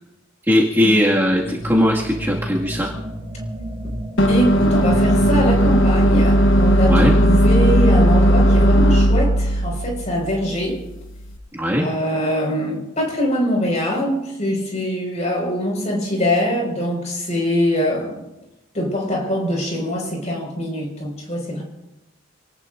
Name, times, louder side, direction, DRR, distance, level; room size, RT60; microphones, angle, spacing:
voice 1, 0.5-2.9 6.9-7.2 11.5-11.9, equal, 10° right, -5 dB, 2.1 m, -18 dB
sound 1, 1.2-8.0, equal, 55° right, 4.2 m, -32 dB
sound 2, 4.2-11.3, equal, 75° left, 1.2 m, -16 dB
voice 2, 4.3-10.8 11.8-18.2 18.7-21.6, equal, 35° left, 0 dB, 5.5 m, -23 dB
27.5 x 18.5 x 2.7 m, 0.93 s
head